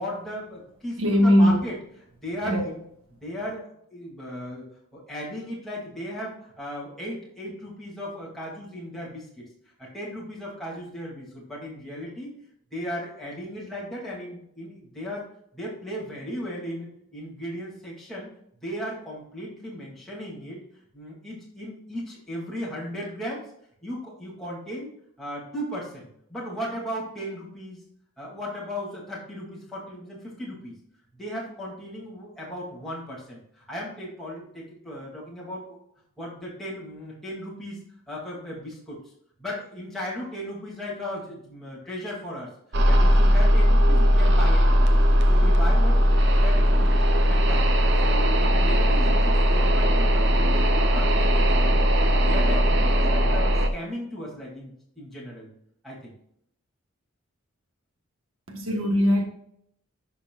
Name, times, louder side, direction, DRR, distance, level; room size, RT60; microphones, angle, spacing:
voice 1, 0.0-1.8 2.2-2.8 3.2-9.5 9.8-12.3 12.7-15.2 15.5-18.3 18.6-20.6 20.9-23.4 23.8-24.9 25.2-27.9 28.2-30.7 31.1-35.8 36.2-37.8 38.1-39.0 39.4-44.9 45.3-47.0 47.2-47.7 48.0-51.9 52.2-55.5 55.8-56.1, equal, ahead, 2.8 m, -36 dB
voice 2, 1.0-1.6 2.4-2.7 58.5-59.2, equal, 75° right, 1.5 m, -20 dB
sound 1, 42.7-53.7, equal, 55° right, 0.9 m, -19 dB
11.0 x 6.0 x 2.5 m
head